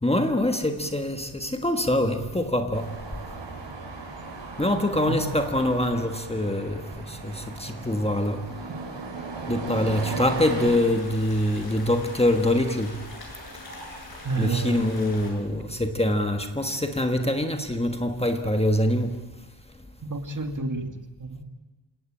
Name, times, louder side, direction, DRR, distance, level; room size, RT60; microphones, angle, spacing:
voice 1, 0.0-2.9 4.6-6.8 7.2-7.3 7.6-8.4 9.5-12.9 14.4-19.1, left 1 dB, 15° left, 1.4 m, -24 dB
sound 1, 2.7-10.8, right 3 dB, 90° right, 6.0 m, -36 dB
sound 2, 10.3-15.3, left 1 dB, 55° left, 7.1 m, -42 dB
voice 2, 14.2-14.9 20.0-20.9 21.2-21.4, right 3 dB, 45° right, 2.1 m, -29 dB
28.0 x 18.0 x 8.9 m
wide cardioid pair, 175°, 43 cm